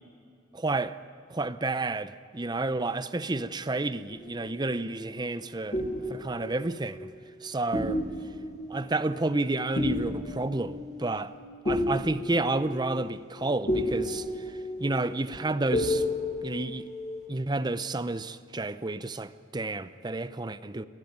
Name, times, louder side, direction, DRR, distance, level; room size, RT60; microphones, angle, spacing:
voice 1, 0.5-1.0 1.3-5.8 6.1-7.1 7.4-8.0 8.7-11.3 11.6-16.0 16.4-16.9 17.3-20.8, right 2 dB, 20° right, 0.6 m, -30 dB
sound 1, 4.1-5.1 5.7-7.4 7.7-17.2, left 1 dB, 35° left, 7.0 m, -33 dB
23.0 x 17.5 x 9.5 m
head